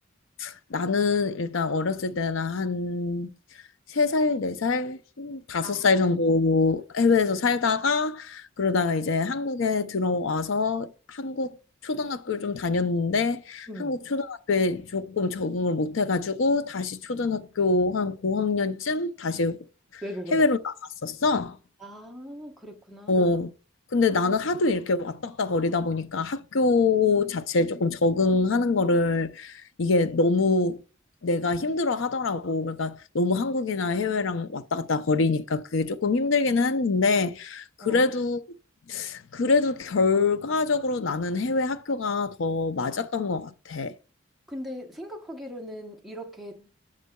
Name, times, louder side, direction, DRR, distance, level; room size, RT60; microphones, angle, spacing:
voice 1, 0.4-3.3 3.9-11.6 11.8-19.6 19.9-20.0 20.3-20.7 21.0-21.6 23.1-23.5 23.9-30.8 31.2-38.4 38.9-43.9, left 3 dB, 75° left, 0.6 m, -25 dB
voice 2, 13.7-14.0 20.0-20.5 21.8-23.3 37.8-38.1 44.5-46.7, equal, ahead, 1.0 m, -39 dB
8.2 x 6.7 x 2.3 m
head